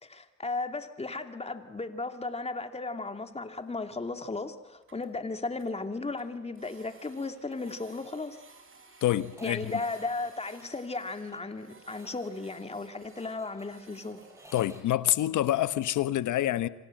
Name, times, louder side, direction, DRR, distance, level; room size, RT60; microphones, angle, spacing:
voice 1, 0.0-8.4 9.4-14.2, left 3 dB, 20° left, 2.5 m, -35 dB
Printer, 2.9-3.0 3.2-3.3 3.6-3.7 4.0-4.1 4.4-4.5 4.7-5.7 6.2-14.5, right 4 dB, 45° right, 5.6 m, -57 dB
sound 1, 7.2-7.7 8.0-8.1 8.4-8.5 9.3-14.8, right 1 dB, 10° right, 7.1 m, -56 dB
voice 2, 9.0-9.7 14.5-16.7, left 13 dB, 80° left, 1.2 m, -27 dB
27.0 x 26.5 x 7.7 m
cardioid pair, 90°, 30 cm